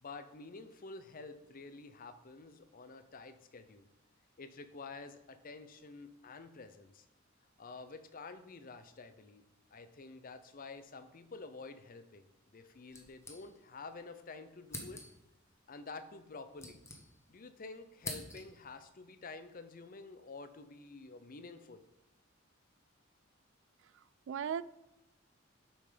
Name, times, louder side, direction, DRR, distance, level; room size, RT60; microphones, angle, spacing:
voice 1, 0.0-3.9 4.4-7.1 7.6-9.4 9.7-15.0 15.7-16.8 17.3-21.8, left 3 dB, 45° left, 11 dB, 0.6 m, -49 dB
sound 1, 12.9-13.9 14.2-14.3 14.7-15.4 16.2-17.5 17.7-18.7, left 2 dB, 15° left, 1.2 m, -47 dB
voice 2, 23.9-24.6, right 8 dB, 65° right, 17 dB, 0.3 m, -38 dB
7.0 x 5.8 x 5.0 m, 0.93 s
head